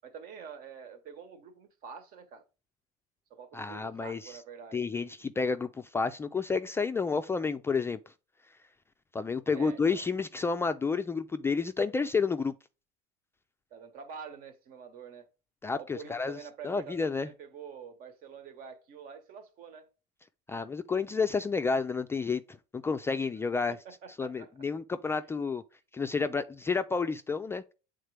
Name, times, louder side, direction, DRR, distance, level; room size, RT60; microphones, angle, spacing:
voice 1, 0.0-2.4 3.3-4.8 9.5-10.0 13.7-15.3 15.8-19.9 23.1-23.3 23.7-24.5 25.2-25.4, right 6 dB, 55° right, 1.3 m, -47 dB
voice 2, 3.5-4.4 4.7-8.0 9.1-12.5 15.6-16.4 16.6-17.3 20.5-23.8 24.2-25.6 25.9-27.7, left 4 dB, 15° left, 0.3 m, -30 dB
7.9 x 3.7 x 3.3 m
supercardioid pair, 125°, 18 cm